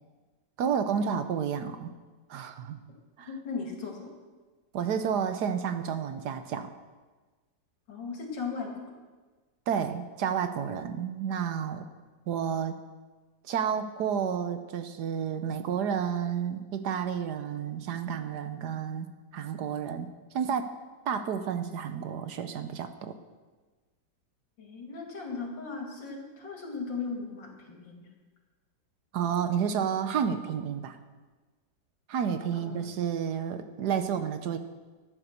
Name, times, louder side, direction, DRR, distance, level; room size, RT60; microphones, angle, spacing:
voice 1, 0.6-1.9 2.3-2.8 3.2-3.3 4.7-6.7 9.7-11.9 12.3-12.7 13.4-20.1 20.3-20.7 21.1-23.2 29.1-31.0 32.1-34.6, right 7 dB, 70° right, 9 dB, 1.3 m, -31 dB
voice 2, 3.3-4.1 7.9-8.7 24.6-28.1 32.5-32.9, left 4 dB, 85° left, 0 dB, 3.1 m, -37 dB
14.0 x 9.9 x 6.6 m, 1.3 s
omnidirectional pair, 1.9 m